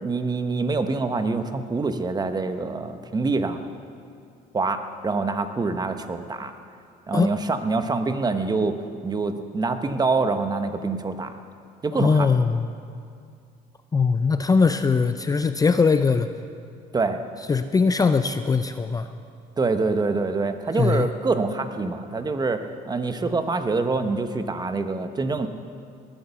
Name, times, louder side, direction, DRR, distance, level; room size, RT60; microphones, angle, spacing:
voice 1, 0.0-3.6 4.5-6.5 7.1-8.8 9.0-11.3 11.8-12.3 16.9-17.2 19.6-25.5, right 3 dB, 25° right, 8 dB, 1.0 m, -25 dB
voice 2, 11.9-12.7 13.9-16.3 17.5-19.1 20.8-21.1, left 4 dB, 20° left, 9 dB, 0.5 m, -21 dB
18.5 x 9.1 x 7.0 m, 2.3 s
cardioid pair, 110°, 17 cm